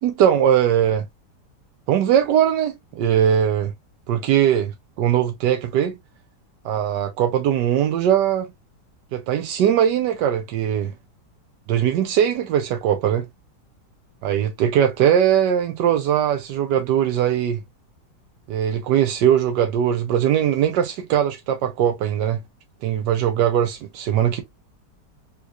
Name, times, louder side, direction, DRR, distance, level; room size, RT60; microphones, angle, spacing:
voice 1, 0.0-1.0 1.9-3.7 4.1-4.7 5.0-5.9 6.6-8.5 9.1-10.9 11.7-13.3 14.2-17.6 18.5-22.4 22.8-24.4, right 9 dB, 90° right, 1.3 m, -20 dB
3.7 x 2.9 x 2.4 m
omnidirectional pair, 1.9 m